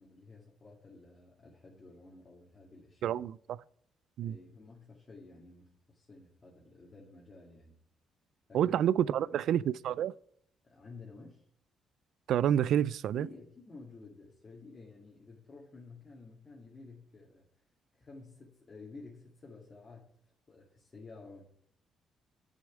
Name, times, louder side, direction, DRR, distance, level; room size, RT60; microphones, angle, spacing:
voice 1, 0.0-3.2 4.2-7.8 8.5-8.7 9.2-9.5 10.6-11.4 13.1-17.5 17.9-20.0 20.5-21.5, left 3 dB, 35° left, 2.2 m, -52 dB
voice 2, 3.0-3.3 4.2-4.4 8.5-10.1 12.3-13.3, right 10 dB, 75° right, 0.3 m, -28 dB
7.0 x 6.4 x 7.2 m
cardioid pair, 90°, 0 cm